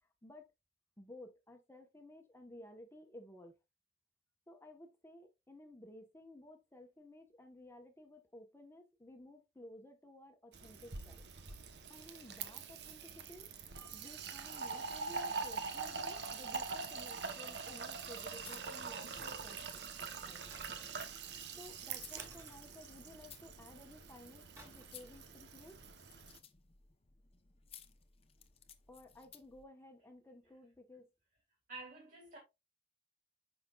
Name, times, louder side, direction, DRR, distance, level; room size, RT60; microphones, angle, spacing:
voice 1, 1.0-3.5 4.5-11.2 11.9-13.5 13.9-20.8 21.6-25.8 28.9-31.1, left 1 dB, 15° left, 1.1 m, -55 dB
Fill (with liquid), 10.5-26.4, right 5 dB, 70° right, 1.0 m, -44 dB
sound 1, 18.0-29.6, left 7 dB, 35° left, 0.8 m, -60 dB
sound 2, 19.1-19.6 20.5-21.3 22.2-23.3 24.6-25.1 25.3-25.6, equal, 15° right, 3.7 m, -58 dB
voice 2, 31.7-32.4, right 3 dB, 50° right, 2.1 m, -49 dB
9.4 x 6.0 x 2.4 m
head